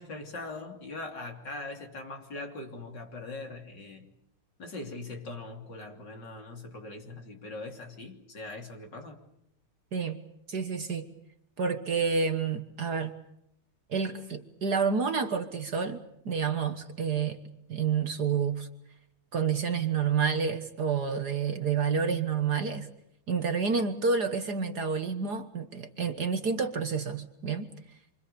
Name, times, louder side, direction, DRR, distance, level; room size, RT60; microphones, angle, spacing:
voice 1, 0.0-4.1 4.6-9.2, left 2 dB, 50° left, 3.7 m, -41 dB
voice 2, 10.5-11.1 11.6-13.1 13.9-16.0 16.3-17.4 17.7-18.7 19.3-22.9 23.3-27.7, right 5 dB, 50° right, 1.7 m, -29 dB
27.0 x 25.5 x 6.9 m
omnidirectional pair, 2.4 m